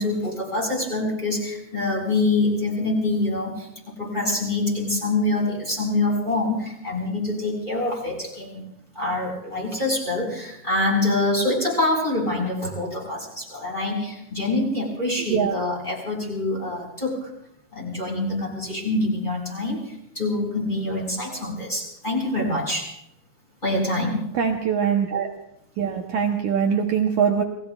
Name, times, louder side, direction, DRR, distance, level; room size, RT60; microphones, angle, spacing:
voice 1, 0.0-8.6 9.0-17.3 17.7-22.9 23.6-24.2, left 2 dB, 10° left, -3 dB, 5.2 m, -25 dB
voice 2, 24.3-25.3 25.8-27.4, right 7 dB, 80° right, 2 dB, 1.7 m, -22 dB
29.5 x 20.0 x 2.4 m, 0.77 s
omnidirectional pair, 4.9 m